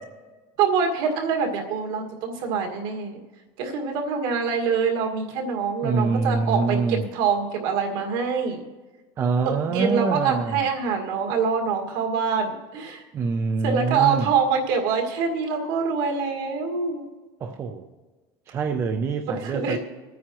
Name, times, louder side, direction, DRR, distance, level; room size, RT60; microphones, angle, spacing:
voice 1, 0.6-3.2 3.6-8.6 9.6-13.1 13.6-17.1 19.3-19.8, right 5 dB, 70° right, 1 dB, 1.9 m, -25 dB
voice 2, 5.8-7.1 9.2-10.7 13.1-14.3 17.4-17.9 18.5-19.8, right 4 dB, 20° right, 5 dB, 0.5 m, -25 dB
23.0 x 9.3 x 3.0 m, 1.3 s
cardioid pair, 180°, 11 cm